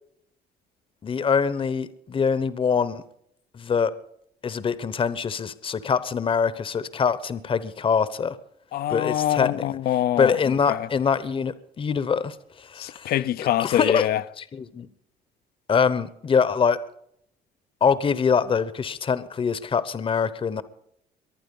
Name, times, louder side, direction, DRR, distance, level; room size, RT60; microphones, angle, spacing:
voice 1, 1.0-3.0 3.5-3.9 4.4-8.4 8.9-9.6 10.2-13.1 13.6-14.1 14.4-14.9 15.7-16.8 17.8-20.6, left 6 dB, 30° left, 0.9 m, -24 dB
voice 2, 8.7-10.3 10.7-10.8 12.8-14.2, left 12 dB, 65° left, 0.7 m, -24 dB
23.5 x 9.0 x 5.4 m
cardioid pair, 110°, 17 cm